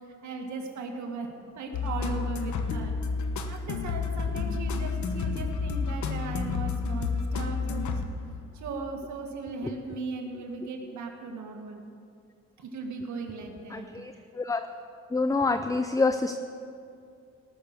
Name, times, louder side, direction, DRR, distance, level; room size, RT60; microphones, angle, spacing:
voice 1, 0.2-2.9 3.5-8.0 8.5-11.9 12.6-13.9, right 4 dB, 70° right, 3 dB, 1.9 m, -37 dB
sound 1, 1.7-8.5, left 5 dB, 70° left, 1.0 m, -30 dB
voice 2, 13.7-14.7 15.1-16.3, left 3 dB, 10° left, 8 dB, 0.5 m, -27 dB
19.5 x 6.6 x 6.6 m, 2.5 s
cardioid pair, 90°, 30 cm